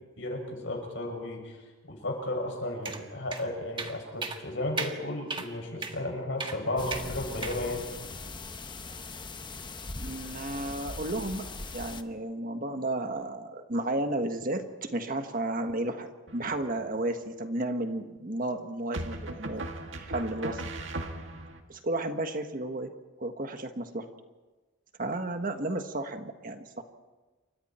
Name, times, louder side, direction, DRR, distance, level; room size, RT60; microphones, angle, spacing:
voice 1, 0.2-1.6 1.9-7.8, left 1 dB, 65° left, 2 dB, 6.6 m, -34 dB
sound 1, 2.9-3.0 3.3-3.4 3.8-3.9 4.2-4.4 4.8-4.9 5.3-5.5 5.8-6.0 6.4-6.6 6.9-7.1 7.4-7.6, right 4 dB, 25° right, 1.6 m, -34 dB
sound 2, 6.8-12.0, left 3 dB, 25° left, 0.9 m, -40 dB
voice 2, 10.0-11.4 11.7-19.7 19.9-20.6 21.7-22.9 23.2-24.1 25.0-26.8, right 1 dB, 45° right, 6 dB, 1.5 m, -33 dB
sound 3, 16.3-16.9 18.9-21.6, right 1 dB, 65° right, 2.1 m, -38 dB
28.5 x 25.0 x 4.4 m, 1.2 s
head